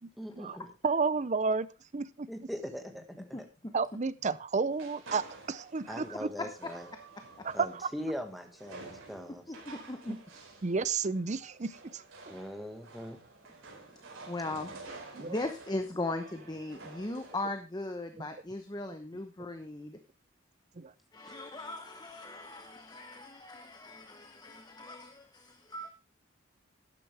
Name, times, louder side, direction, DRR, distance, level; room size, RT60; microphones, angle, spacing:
voice 1, 0.2-0.6 2.3-3.2 5.9-6.8 7.5-9.4 12.3-13.2, equal, ahead, 1.6 m, -40 dB
voice 2, 0.8-1.7 1.9-2.3 3.7-6.1 7.5-7.8 10.6-12.3 15.1-15.3 20.8-20.9, right 4 dB, 35° right, 0.6 m, -31 dB
voice 3, 3.2-3.7 6.4-6.7 7.4-7.5 9.5-10.2 14.3-14.7 15.2-20.0 21.1-25.9, left 2 dB, 20° left, 0.9 m, -39 dB
sound 1, 4.7-17.6, right 3 dB, 85° right, 4.6 m, -51 dB
12.5 x 10.0 x 3.4 m
head